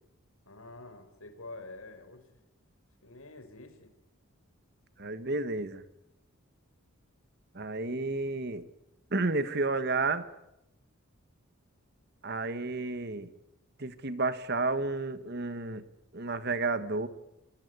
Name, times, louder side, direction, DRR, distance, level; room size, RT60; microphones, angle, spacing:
voice 1, 0.4-2.3 3.0-3.9, left 2 dB, 75° left, 8 dB, 4.6 m, -47 dB
voice 2, 5.0-5.8 7.5-8.7 9.1-10.3 12.2-13.3 13.8-15.8 16.1-17.1, right 3 dB, 50° right, 12 dB, 1.5 m, -31 dB
28.5 x 19.0 x 9.6 m, 0.92 s
head